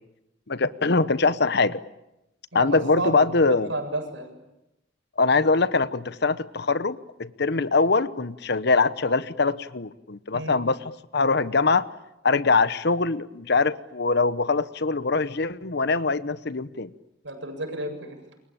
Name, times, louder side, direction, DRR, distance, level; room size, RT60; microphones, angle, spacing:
voice 1, 0.5-1.8 2.5-3.7 5.2-11.9 12.2-16.9, left 3 dB, 60° left, 16 dB, 1.0 m, -23 dB
voice 2, 2.5-4.3 10.3-10.6 17.2-18.2, right 2 dB, 75° right, 4 dB, 7.6 m, -32 dB
28.5 x 23.5 x 8.8 m, 0.90 s
head